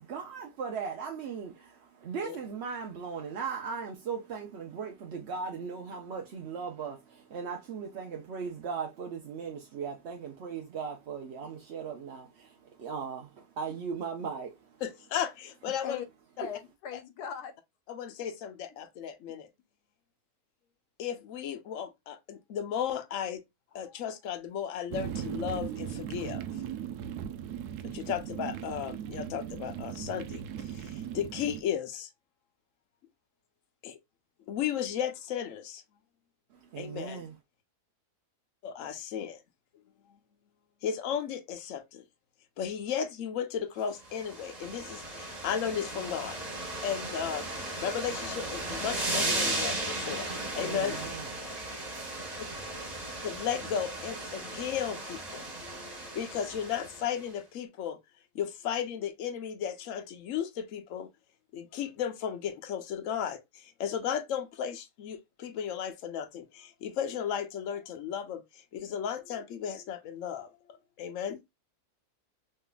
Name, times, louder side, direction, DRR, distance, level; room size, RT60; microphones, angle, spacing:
voice 1, 0.0-14.6 36.6-37.3 50.6-51.3, right 6 dB, 55° right, 0.8 m, -38 dB
voice 2, 14.8-16.0 16.4-16.5 17.9-19.5 21.0-23.4 23.7-26.4 27.8-32.1 33.8-34.0 34.5-35.8 36.8-37.2 38.6-39.4 40.8-42.0 42.6-46.4 46.8-47.5 47.8-50.3 50.6-51.0 53.2-58.0 58.3-61.1 61.5-70.5 71.0-71.4, left 8 dB, 60° left, 1.0 m, -35 dB
voice 3, 16.4-17.5, left 8 dB, 85° left, 1.3 m, -39 dB
sound 1, 24.9-31.6, right 9 dB, 80° right, 1.1 m, -38 dB
sound 2, 44.0-57.2, right 2 dB, 30° right, 1.4 m, -36 dB
3.5 x 3.3 x 2.3 m
omnidirectional pair, 1.6 m